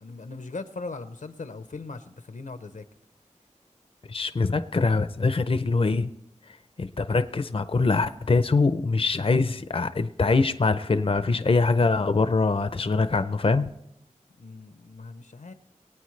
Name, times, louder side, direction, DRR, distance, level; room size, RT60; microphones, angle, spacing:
voice 1, 0.0-2.8 14.4-15.5, left 3 dB, 85° left, 11 dB, 0.8 m, -39 dB
voice 2, 4.1-6.1 6.8-13.7, left 3 dB, 45° left, 11 dB, 0.5 m, -23 dB
22.0 x 8.9 x 3.2 m, 0.82 s
wide cardioid pair, 50°, 13 cm